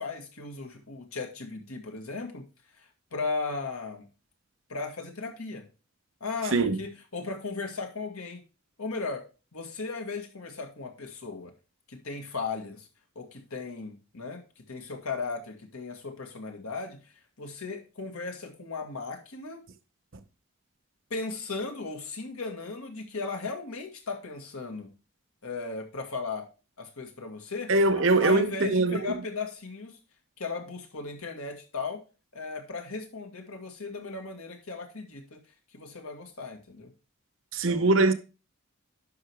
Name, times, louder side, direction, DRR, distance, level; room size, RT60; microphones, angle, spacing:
voice 1, 0.0-2.4 2.7-4.1 4.7-5.7 6.2-8.4 8.8-9.2 9.5-11.5 11.9-12.9 13.2-19.6 21.1-24.9 25.4-26.5 26.8-30.0 30.4-32.0 32.3-35.4 35.7-36.9 37.7-38.0, left 4 dB, 90° left, 1.9 m, -36 dB
voice 2, 27.7-29.1 37.5-38.1, right 2 dB, 65° right, 0.8 m, -22 dB
10.5 x 6.0 x 3.5 m
head